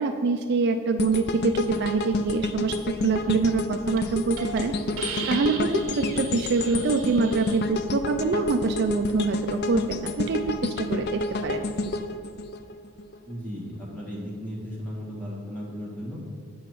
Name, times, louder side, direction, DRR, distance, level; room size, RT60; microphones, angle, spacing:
voice 1, 0.0-2.8 3.0-4.7 5.3-11.6, right 4 dB, 50° right, 6 dB, 0.4 m, -25 dB
sound 1, 1.0-13.2 13.6-13.7, left 2 dB, 50° left, 0.4 m, -30 dB
Hiss, 3.4-3.6 4.0-4.1 4.4-4.6 5.0-7.6, right 5 dB, 70° right, 1.3 m, -37 dB
voice 2, 13.3-16.2, equal, 10° left, -6 dB, 1.8 m, -35 dB
8.0 x 6.7 x 4.6 m, 2.3 s
head